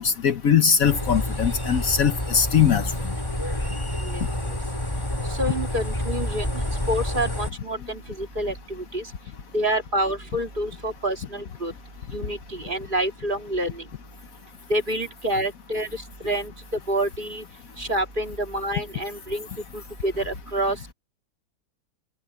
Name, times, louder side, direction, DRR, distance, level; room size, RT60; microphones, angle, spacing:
voice 1, 0.0-2.9, left 7 dB, 60° left, 1.3 m, -21 dB
sound 1, 0.8-7.5, left 1 dB, 15° left, 3.0 m, -28 dB
voice 2, 4.0-4.6 5.3-9.1 9.5-11.7 12.1-13.8 14.7-16.5 16.9-17.4 17.8-19.5 19.7-20.9, right 1 dB, 30° right, 2.2 m, -28 dB
omnidirectional pair, 1.8 m